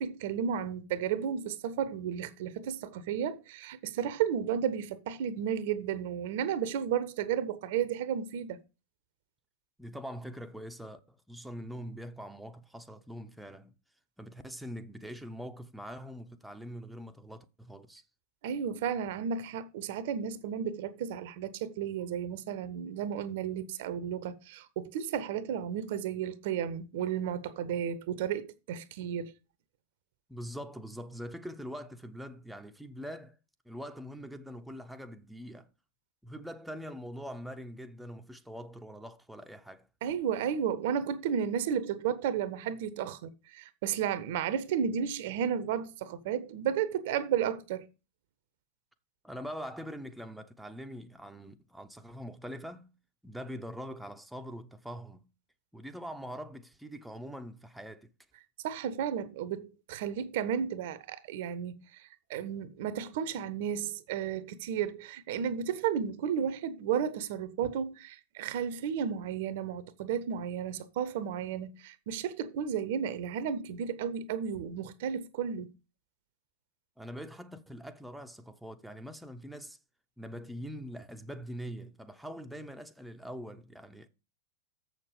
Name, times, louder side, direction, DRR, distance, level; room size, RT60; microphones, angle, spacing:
voice 1, 0.0-8.6 18.4-29.3 40.0-47.9 58.6-75.7, right 8 dB, 50° right, 0.8 m, -33 dB
voice 2, 9.8-13.7 14.2-18.0 30.3-33.4 33.6-35.7 36.2-39.9 49.2-52.9 53.2-55.3 55.7-58.1 77.0-79.8 80.2-84.1, equal, ahead, 0.8 m, -43 dB
7.2 x 6.6 x 4.8 m
figure-of-eight pair, 90°, 0 cm